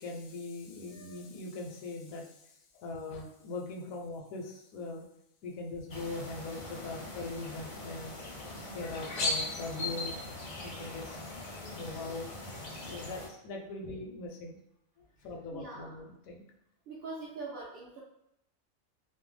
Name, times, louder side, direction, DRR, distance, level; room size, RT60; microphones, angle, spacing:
voice 1, 0.0-2.4 2.7-5.1 5.4-8.2 8.7-10.2 10.6-11.2 11.5-12.3 12.6-14.6 15.2-16.4, left 3 dB, 80° left, 1 dB, 1.0 m, -41 dB
sound 1, 5.9-13.3, left 2 dB, 55° left, 0.5 m, -39 dB
voice 2, 15.2-15.9 16.9-18.0, right 3 dB, 60° right, -6 dB, 0.6 m, -43 dB
2.6 x 2.1 x 3.2 m, 0.79 s
omnidirectional pair, 1.4 m